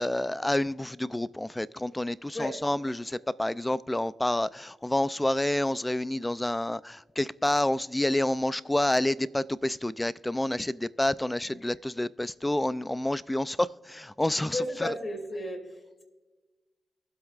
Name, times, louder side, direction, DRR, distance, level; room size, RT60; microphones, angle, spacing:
voice 1, 0.0-14.9, left 1 dB, 15° left, 0.4 m, -28 dB
voice 2, 14.5-16.0, left 1 dB, 40° left, 2.8 m, -33 dB
23.0 x 7.8 x 2.5 m
cardioid pair, 65°, 0 cm